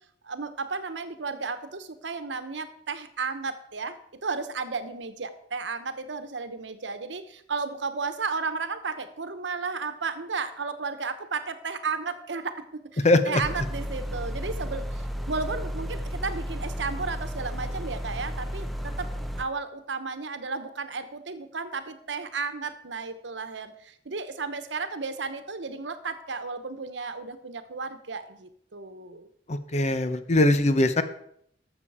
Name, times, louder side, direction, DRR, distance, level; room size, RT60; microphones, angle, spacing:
voice 1, 0.2-19.1 19.4-29.3, right 4 dB, 90° right, 10 dB, 1.0 m, -33 dB
voice 2, 13.0-13.4 29.5-31.0, left 2 dB, 40° left, 11 dB, 0.8 m, -21 dB
sound 1, 13.4-19.4, equal, ahead, 0.8 m, -33 dB
13.0 x 7.0 x 4.9 m, 0.68 s
head